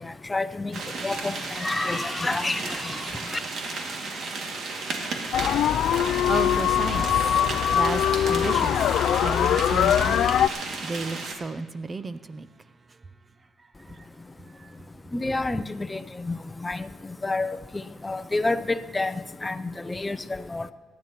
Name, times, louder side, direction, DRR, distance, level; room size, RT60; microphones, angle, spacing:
voice 1, 0.3-0.8 1.0-3.0 3.3-3.4 15.1-16.9 17.2-17.6 18.0-19.1 19.4-19.6 19.8-20.7, left 2 dB, 20° left, 13 dB, 0.6 m, -28 dB
sound 1, 0.7-11.3, right 3 dB, 65° right, 2.2 m, -33 dB
sound 2, 5.3-10.5, left 10 dB, 75° left, 0.3 m, -22 dB
voice 2, 5.9-7.1 7.7-8.8 9.2-10.2 10.8-12.5 14.6-14.7, right 3 dB, 30° right, 13 dB, 0.6 m, -32 dB
26.0 x 10.5 x 3.0 m, 1.5 s
cardioid pair, 90°, 0 cm